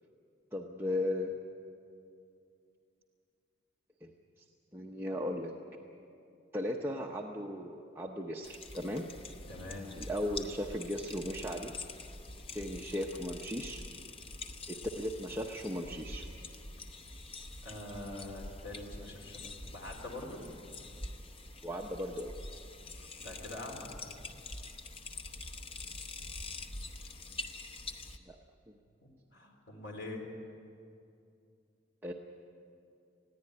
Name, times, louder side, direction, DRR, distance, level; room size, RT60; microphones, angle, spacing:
voice 1, 0.5-1.3 4.0-4.1 4.7-5.5 6.5-9.1 10.0-11.7 12.5-13.8 14.7-16.3 21.6-22.3 28.3-28.4 32.0-32.1, left 1 dB, 10° right, -1 dB, 0.9 m, -36 dB
sound 1, 8.4-28.2, left 2 dB, 30° left, 0.9 m, -45 dB
voice 2, 9.5-9.9 17.6-20.4 23.0-23.9 29.0-30.2, left 2 dB, 70° left, 1 dB, 3.8 m, -44 dB
20.5 x 15.0 x 9.7 m, 2.5 s
head